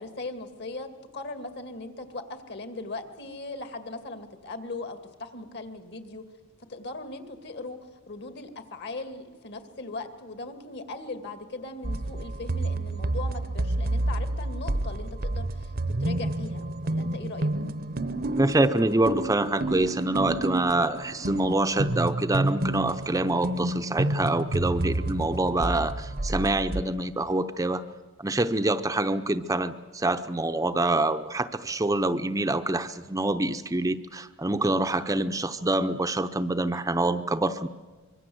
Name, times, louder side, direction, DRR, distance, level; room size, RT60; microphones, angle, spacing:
voice 1, 0.0-6.2 6.7-7.8 8.1-15.7 16.0-17.5, left 2 dB, 55° left, 8 dB, 2.3 m, -39 dB
sound 1, 11.8-26.8, right 1 dB, 45° right, 0.8 m, -29 dB
voice 2, 18.4-27.8 28.2-37.7, right 2 dB, 15° right, 9 dB, 0.7 m, -26 dB
25.0 x 23.0 x 7.9 m, 1.4 s
head